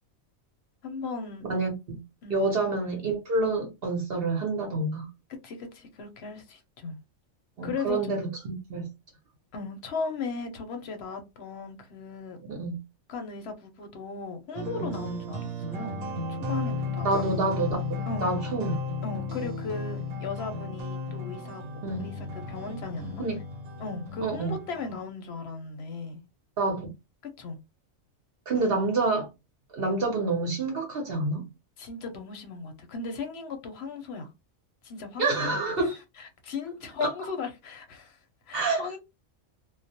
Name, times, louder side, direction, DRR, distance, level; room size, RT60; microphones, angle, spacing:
voice 1, 0.8-1.5 2.2-2.5 5.4-7.0 7.6-8.3 9.5-12.4 13.1-16.0 16.3-17.3 18.1-18.3 19.0-21.6 22.0-23.2 23.8-26.2 27.4-27.6 31.8-34.3 34.8-35.9 36.2-38.2 38.5-39.0, left 4 dB, 60° left, 0.8 m, -37 dB
voice 2, 1.4-2.0 2.3-5.1 7.6-8.9 12.5-12.8 17.0-17.8 18.2-18.8 21.8-22.0 23.2-23.4 24.2-24.5 26.6-26.9 28.5-29.3 29.7-31.5 35.2-36.0 37.0-37.1 38.5-38.8, right 3 dB, 55° right, 0.8 m, -27 dB
sound 1, 14.5-25.0, left 3 dB, 90° right, 1.1 m, -34 dB
2.3 x 2.1 x 2.6 m
omnidirectional pair, 1.4 m